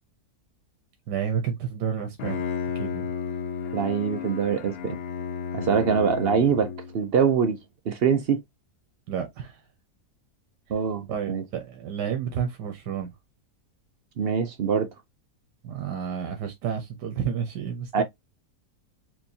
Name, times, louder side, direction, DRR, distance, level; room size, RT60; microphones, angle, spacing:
voice 1, 1.1-2.4 2.8-3.1 9.1-9.6 11.1-13.1 15.6-18.0, right 8 dB, 85° right, 1.4 m, -30 dB
Bowed string instrument, 2.0-7.1, left 7 dB, 60° left, 0.6 m, -33 dB
voice 2, 3.7-5.0 5.5-7.6 7.9-8.4 10.7-11.4 14.2-14.9 17.9-18.0, right 6 dB, 65° right, 0.6 m, -24 dB
4.5 x 3.1 x 2.7 m
omnidirectional pair, 1.8 m